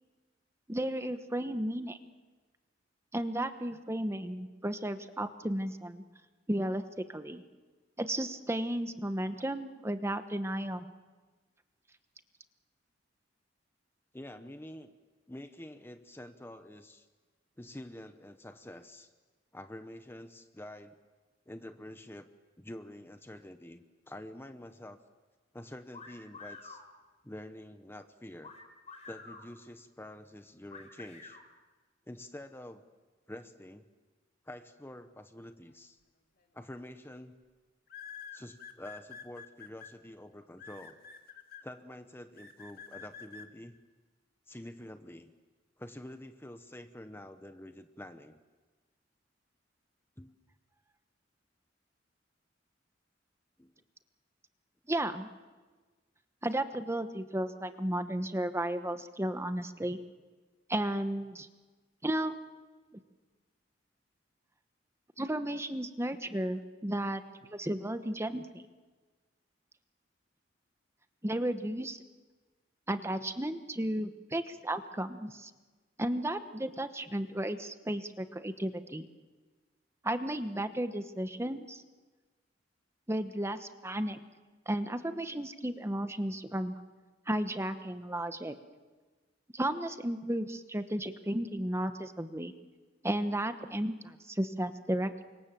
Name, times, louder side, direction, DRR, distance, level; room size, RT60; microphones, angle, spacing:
voice 1, 0.7-2.0 3.1-6.0 6.5-7.4 8.0-10.9 54.9-55.3 56.4-60.0 60.7-61.5 62.0-62.3 65.2-67.2 67.5-68.6 71.2-72.0 72.9-75.5 76.0-79.0 80.0-81.8 83.1-84.2 84.7-86.8 87.3-88.6 89.5-92.5 93.0-95.2, right 1 dB, 15° right, 9 dB, 1.1 m, -34 dB
voice 2, 14.1-14.9 15.3-17.1 17.6-19.1 19.5-21.0 21.5-22.3 22.6-25.0 25.5-26.8 27.2-28.5 29.1-31.4 32.1-32.8 33.3-33.8 34.4-36.0 36.5-37.4 38.3-41.0 41.6-43.8 44.5-45.3 45.8-48.4 50.2-50.3 53.6-53.7, left 1 dB, 10° left, 8 dB, 0.9 m, -47 dB
sound 1, 25.9-26.8 28.4-29.4 30.7-31.4, left 4 dB, 35° left, 4.6 m, -48 dB
sound 2, 36.4-36.7 37.9-39.9 40.6-41.6 42.4-43.5, left 7 dB, 55° left, 2.3 m, -47 dB
29.0 x 25.0 x 7.6 m, 1.3 s
head